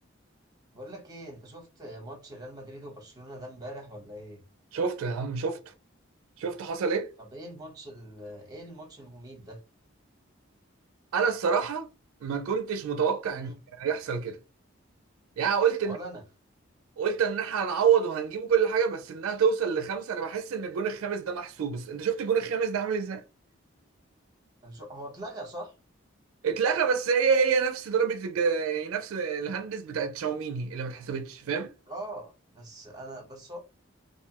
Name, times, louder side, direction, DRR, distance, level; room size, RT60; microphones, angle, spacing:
voice 1, 0.7-4.4 7.2-9.6 13.3-13.6 15.8-16.2 24.6-25.7 31.9-33.6, right 1 dB, 20° right, 0.8 m, -42 dB
voice 2, 4.7-5.7 6.4-7.1 11.1-11.9 12.2-13.5 13.8-14.4 15.4-16.0 17.0-23.2 26.4-31.7, right 6 dB, 90° right, 0.4 m, -27 dB
2.5 x 2.0 x 2.8 m
head